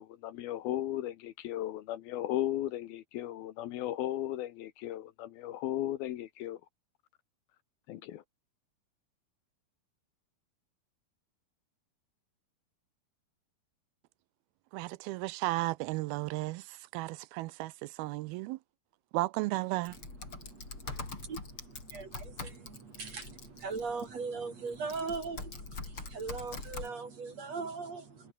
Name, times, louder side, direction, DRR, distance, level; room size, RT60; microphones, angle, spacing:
voice 1, 0.0-6.6 7.9-8.2, left 13 dB, 75° left, 2.9 m, -36 dB
voice 2, 14.7-18.6 19.1-20.0, right 20 dB, 80° right, 2.4 m, -34 dB
Typing, 19.8-24.0 24.7-26.9, left 3 dB, 35° left, 5.7 m, -43 dB
voice 3, 19.9-28.3, right 4 dB, 45° right, 4.3 m, -40 dB
omnidirectional pair, 4.5 m